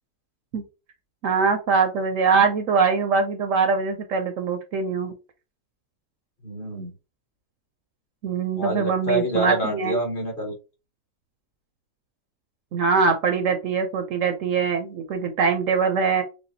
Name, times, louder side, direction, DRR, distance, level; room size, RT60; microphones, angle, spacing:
voice 1, 1.2-5.1 8.2-10.0 12.7-16.2, right 5 dB, 65° right, 7 dB, 0.8 m, -22 dB
voice 2, 6.4-6.9 8.5-10.5, right 1 dB, 35° left, 1 dB, 1.2 m, -27 dB
6.5 x 2.3 x 2.7 m, 0.31 s
omnidirectional pair, 1.6 m